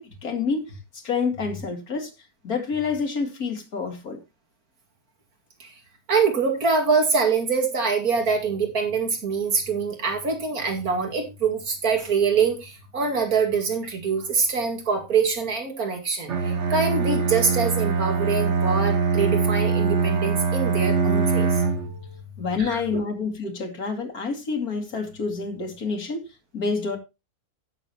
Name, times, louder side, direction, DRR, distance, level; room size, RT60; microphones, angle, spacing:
voice 1, 0.0-2.1 2.4-4.2 22.4-26.3 26.5-27.0, left 5 dB, 80° left, 2.6 m, -28 dB
voice 2, 6.1-21.6 22.6-22.8, right 5 dB, 80° right, 2.8 m, -24 dB
Bowed string instrument, 16.3-22.0, right 5 dB, 55° right, 1.5 m, -23 dB
16.0 x 6.9 x 2.9 m
omnidirectional pair, 1.5 m